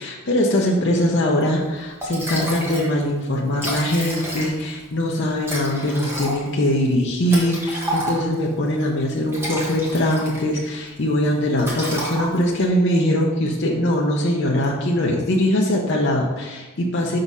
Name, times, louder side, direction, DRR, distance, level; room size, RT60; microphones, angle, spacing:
voice 1, 0.0-17.2, left 1 dB, 50° left, -2 dB, 0.7 m, -21 dB
Liquid, 1.6-1.7 2.0-2.9 3.2-3.3 3.5-4.8 5.4-8.5 9.1-10.7 11.0-11.2 11.6-12.6, right 1 dB, 10° right, 1.1 m, -29 dB
6.0 x 3.9 x 5.4 m, 1.2 s
head